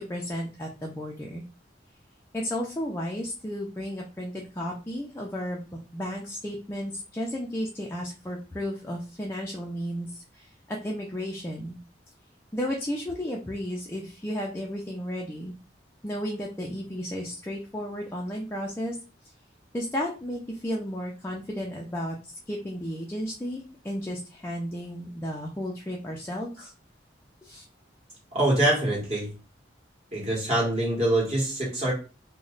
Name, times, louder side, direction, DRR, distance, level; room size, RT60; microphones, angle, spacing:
voice 1, 0.0-1.4 2.3-11.8 12.5-15.5 16.0-18.9 19.7-22.2 22.5-26.7 27.4-27.6, equal, 15° left, -2 dB, 0.4 m, -33 dB
voice 2, 28.3-29.3 30.1-31.9, right 1 dB, 35° right, -4 dB, 1.8 m, -24 dB
3.0 x 2.1 x 3.8 m, 0.33 s
head